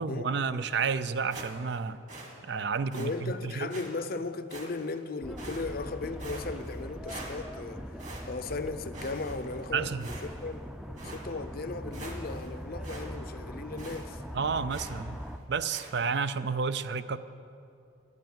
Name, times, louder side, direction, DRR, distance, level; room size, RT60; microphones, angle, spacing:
voice 1, 0.0-2.0 2.4-3.7 9.7-10.1 14.3-15.2 15.5-17.2, right 5 dB, 60° right, 0.4 m, -31 dB
sound 1, 1.3-1.8 2.1-2.3 2.9-3.1 3.7-3.9 4.5-5.0 5.4-5.9 6.2-6.8 7.1-7.7 8.0-8.6 8.9-9.6 10.0-10.5 11.0-11.2 11.6-11.7 11.9-12.5 12.8-13.1 13.3-13.4 13.8-14.0 14.7-15.0 15.7-15.9, right 2 dB, 40° right, 1.9 m, -44 dB
voice 2, 2.9-8.0 8.3-10.1 10.4-10.7 11.0-14.2, left 3 dB, 55° left, 0.6 m, -36 dB
sound 2, 5.2-15.4, equal, 5° right, 0.4 m, -41 dB
11.0 x 9.4 x 7.6 m
head